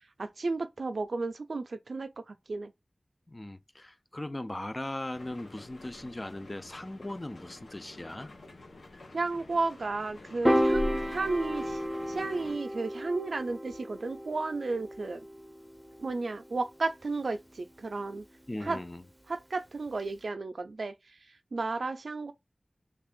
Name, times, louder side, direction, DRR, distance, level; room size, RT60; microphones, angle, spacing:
voice 1, 0.2-2.7 9.1-11.8 12.1-15.2 16.0-18.2 18.6-18.8 19.3-20.9 21.5-22.3, right 3 dB, 80° right, 0.4 m, -33 dB
voice 2, 3.3-8.3 18.5-19.0, left 1 dB, 30° left, 0.4 m, -39 dB
sound 1, 5.1-12.6, left 2 dB, 90° left, 0.8 m, -45 dB
Piano, 10.4-16.8, equal, 10° right, 0.6 m, -32 dB
3.2 x 2.4 x 3.6 m
wide cardioid pair, 45°, 0 cm